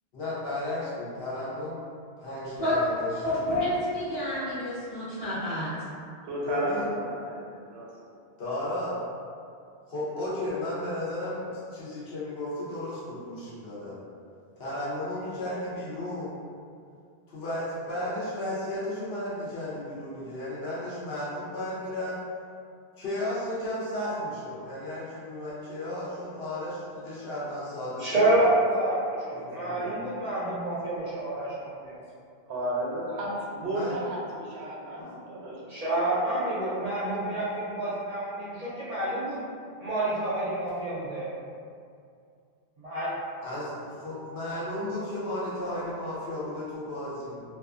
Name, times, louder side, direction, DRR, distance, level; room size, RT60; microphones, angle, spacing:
voice 1, 0.1-1.8 2.2-3.2 6.4-6.9 8.4-9.0 9.9-14.0 14.6-16.4 17.3-22.2 23.0-28.3 29.3-29.9 33.7-34.0 35.0-35.1 43.4-47.4, left 1 dB, 70° left, -9 dB, 1.0 m, -34 dB
voice 2, 3.2-5.7, left 1 dB, 35° left, -12 dB, 1.0 m, -29 dB
voice 3, 6.3-8.2 32.5-36.7, right 1 dB, 80° right, -4 dB, 0.9 m, -34 dB
voice 4, 28.0-28.9 29.3-32.0 35.7-39.4 39.8-41.3 42.8-43.1, right 1 dB, 50° right, -10 dB, 0.5 m, -28 dB
2.5 x 2.3 x 2.4 m, 2.3 s
omnidirectional pair, 1.1 m